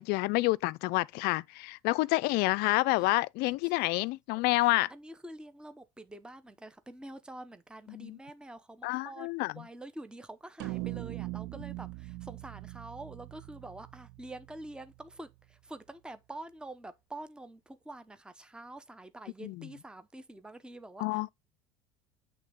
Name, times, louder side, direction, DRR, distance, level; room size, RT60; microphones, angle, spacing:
voice 1, 0.0-4.9 7.9-8.2 8.8-9.6 19.4-19.7 21.0-21.3, left 21 dB, 60° left, 0.4 m, -28 dB
voice 2, 4.6-9.3 9.5-21.3, right 2 dB, 5° right, 0.8 m, -47 dB
sound 1, 10.6-15.1, right 20 dB, 60° right, 0.5 m, -41 dB
8.3 x 3.6 x 3.8 m
hypercardioid pair, 80°, 18 cm